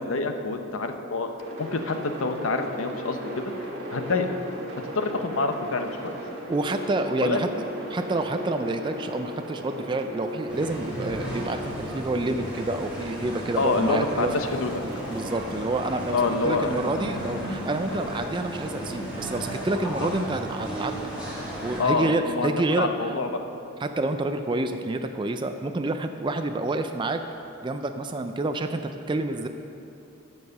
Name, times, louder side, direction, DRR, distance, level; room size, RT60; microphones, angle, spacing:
voice 1, 0.0-1.3 1.6-3.5 3.9-4.3 4.9-6.2 7.2-7.4 13.6-14.7 16.1-16.8 20.0-20.1 21.8-23.4, left 3 dB, 70° left, 6 dB, 0.7 m, -26 dB
sound 1, 1.4-13.8 14.4-16.5, equal, 50° right, 1.8 m, -38 dB
voice 2, 6.5-7.5 7.9-14.5 14.8-21.0 21.6-23.2 23.8-27.2 27.6-29.5, right 2 dB, 20° right, 7 dB, 0.3 m, -28 dB
sound 2, 10.5-21.8, equal, 5° right, 2.3 m, -35 dB
13.5 x 4.7 x 6.5 m, 2.8 s
head